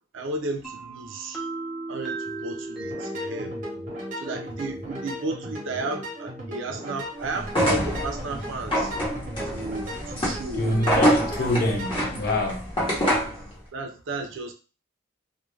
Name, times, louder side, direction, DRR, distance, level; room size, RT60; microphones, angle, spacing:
voice 1, 0.1-1.4 1.9-3.6 4.2-8.9 9.5-10.7 11.3-11.5 13.7-14.5, right 2 dB, 65° right, 0.4 m, -33 dB
sound 1, 0.6-8.3, right 2 dB, ahead, 0.5 m, -38 dB
sound 2, 2.8-12.4, equal, 35° right, 0.8 m, -37 dB
sound 3, 7.4-13.4, equal, 25° left, 0.9 m, -26 dB
voice 2, 10.5-12.7, left 1 dB, 45° left, 0.5 m, -26 dB
2.4 x 2.1 x 3.1 m
head